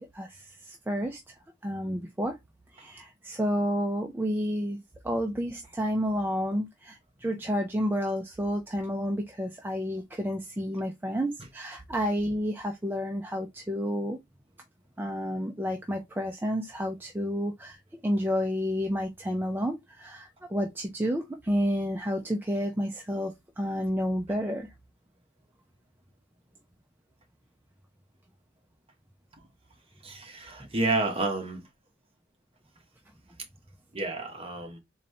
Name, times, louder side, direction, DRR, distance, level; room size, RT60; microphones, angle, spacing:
voice 1, 0.0-1.4 1.6-2.4 2.7-14.2 15.0-24.7 30.6-30.7, equal, 10° right, 0.4 m, -30 dB
voice 2, 30.0-31.6 33.9-34.8, right 2 dB, 30° right, 0.9 m, -30 dB
4.0 x 2.7 x 3.2 m
head